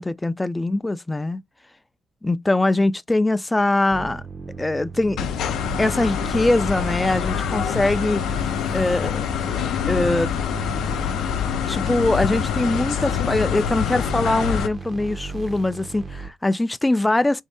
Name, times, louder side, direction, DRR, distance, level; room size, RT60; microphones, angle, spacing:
voice 1, 0.0-1.4 2.2-4.2 4.6-5.2 5.8-8.2 8.7-9.2 9.9-10.3 11.7-17.4, left 2 dB, 15° left, 0.3 m, -22 dB
sound 1, 3.9-16.3, right 4 dB, 40° right, 0.7 m, -35 dB
sound 2, 5.2-14.7, left 9 dB, 80° left, 0.5 m, -25 dB
3.5 x 2.7 x 3.2 m
cardioid pair, 90°, 0 cm